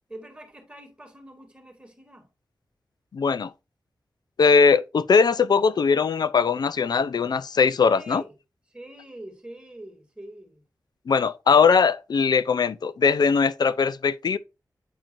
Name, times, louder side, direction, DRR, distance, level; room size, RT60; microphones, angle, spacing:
voice 1, 0.1-2.3 7.9-8.3 8.7-10.6, right 1 dB, 15° right, 2.3 m, -44 dB
voice 2, 3.1-3.5 4.4-8.2 11.1-14.4, left 5 dB, 65° left, 0.4 m, -20 dB
8.9 x 4.4 x 2.5 m
wide cardioid pair, 80°, 7 cm